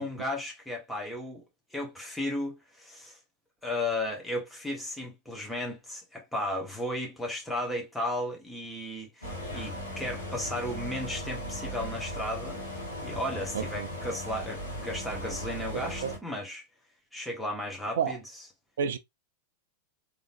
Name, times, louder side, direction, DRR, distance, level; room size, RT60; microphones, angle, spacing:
voice 1, 0.0-1.4 1.7-3.2 3.6-12.6 13.0-16.6 17.1-18.2, left 1 dB, 5° left, 1.5 m, -34 dB
sound 1, 9.2-16.2, equal, 80° left, 1.3 m, -37 dB
voice 2, 13.5-13.9 15.7-16.1 18.0-18.2 18.8-19.0, right 7 dB, 60° right, 0.4 m, -31 dB
3.6 x 3.0 x 2.6 m
figure-of-eight pair, 90°, 0 cm